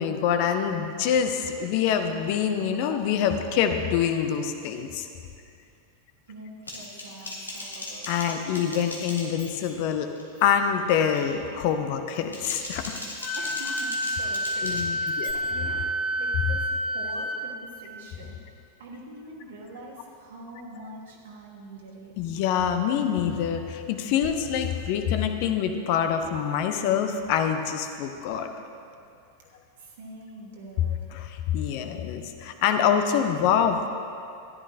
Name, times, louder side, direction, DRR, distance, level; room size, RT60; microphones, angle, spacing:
voice 1, 0.0-5.1 8.1-10.1 10.4-13.0 14.6-15.3 22.2-28.5 31.1-33.9, left 8 dB, 45° left, 7 dB, 0.7 m, -25 dB
voice 2, 6.3-8.1 13.3-22.1 28.9-29.1 29.8-31.1, right 1 dB, 60° right, -2 dB, 1.3 m, -44 dB
Typing, 6.7-9.8 10.2-10.5 10.9-11.3 12.1-15.3, left 2 dB, 80° left, 1.6 m, -38 dB
Wind instrument woodwind instrument, 13.2-17.4, equal, 20° left, 1.0 m, -29 dB
14.0 x 10.5 x 2.8 m, 2.5 s
figure-of-eight pair, 90°, 0 cm